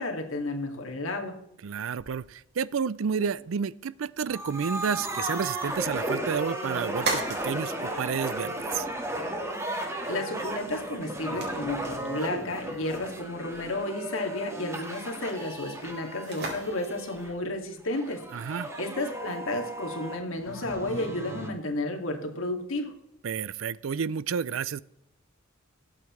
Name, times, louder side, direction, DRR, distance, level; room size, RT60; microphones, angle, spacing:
voice 1, 0.0-1.4 10.1-22.9, left 2 dB, 80° left, 2 dB, 2.3 m, -32 dB
voice 2, 1.6-8.9 18.3-18.7 23.2-24.8, right 6 dB, 75° right, 20 dB, 0.4 m, -31 dB
sound 1, 2.0-20.4, right 3 dB, 55° right, 3.7 m, -42 dB
sound 2, 4.3-17.3 17.9-21.5, right 1 dB, 15° right, 1.7 m, -35 dB
20.5 x 8.5 x 3.2 m, 0.81 s
head